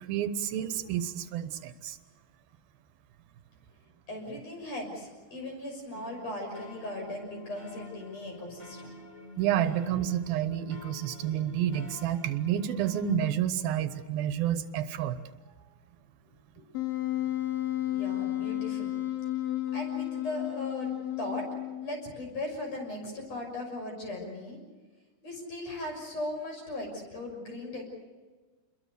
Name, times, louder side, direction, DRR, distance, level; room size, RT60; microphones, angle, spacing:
voice 1, 0.0-2.0 9.4-15.2, right 10 dB, 80° right, 11 dB, 2.8 m, -29 dB
voice 2, 4.1-8.9 16.6-16.7 17.9-18.9 19.7-20.9 21.2-21.5 21.8-24.6 25.2-27.8, left 1 dB, 45° left, 2 dB, 7.4 m, -38 dB
sound 1, 5.9-13.2, left 2 dB, 15° left, 2.0 m, -47 dB
Wind instrument woodwind instrument, 16.7-22.2, left 13 dB, 65° left, 3.5 m, -32 dB
29.0 x 22.0 x 6.8 m, 1.3 s
omnidirectional pair, 4.3 m